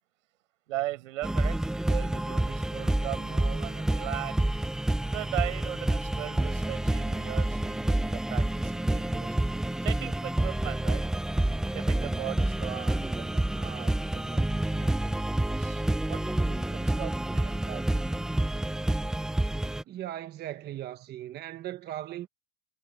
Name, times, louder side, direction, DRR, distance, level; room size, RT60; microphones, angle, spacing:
voice 1, 0.7-1.6 1.8-4.3 5.0-11.0 11.7-18.2, right 16 dB, 80° right, 6.2 m, -39 dB
sound 1, 1.2-19.8, right 1 dB, ahead, 0.4 m, -28 dB
voice 2, 19.9-22.3, right 12 dB, 25° right, 1.0 m, -38 dB
supercardioid pair, 145°, 37 cm